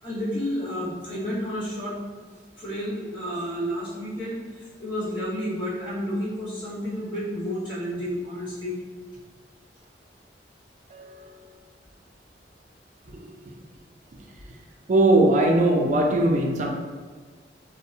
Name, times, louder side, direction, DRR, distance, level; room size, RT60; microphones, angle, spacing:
voice 1, 0.0-2.0 2.6-8.8, equal, 25° left, -12 dB, 1.1 m, -31 dB
voice 2, 10.9-11.6 13.1-13.6 14.9-16.7, right 2 dB, 45° right, 1 dB, 0.3 m, -21 dB
2.6 x 2.0 x 2.7 m, 1.5 s
head